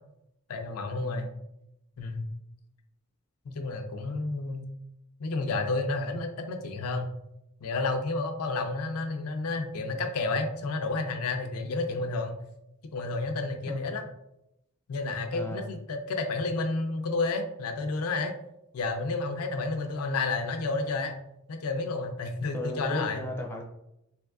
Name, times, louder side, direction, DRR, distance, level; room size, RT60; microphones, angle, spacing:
voice 1, 0.5-1.3 2.0-2.3 3.5-4.7 5.2-7.1 7.6-12.4 12.9-14.0 14.9-18.3 18.7-21.1 21.5-23.2, left 3 dB, 85° left, 5 dB, 0.4 m, -31 dB
voice 2, 1.0-1.3 13.7-13.8 15.3-15.6 22.5-23.6, left 1 dB, 10° left, 0 dB, 0.4 m, -35 dB
3.5 x 2.6 x 2.3 m, 0.84 s
head